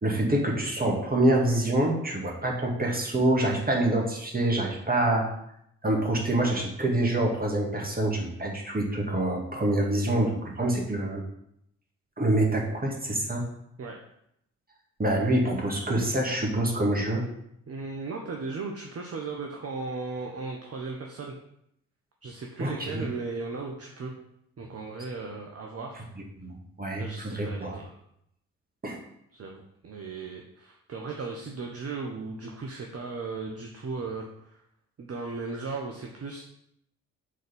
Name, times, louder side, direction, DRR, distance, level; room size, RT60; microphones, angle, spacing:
voice 1, 0.0-5.3 5.8-11.2 12.2-13.5 15.0-17.2 22.6-23.1 26.2-27.8 28.8-29.0, right 1 dB, 25° right, 0 dB, 2.3 m, -26 dB
voice 2, 17.7-21.3 22.2-24.1 24.6-26.1 27.0-27.9 29.3-34.6 35.0-36.4, right 4 dB, 40° right, 1 dB, 1.2 m, -36 dB
6.6 x 4.0 x 5.4 m, 0.75 s
hypercardioid pair, 45°, 36 cm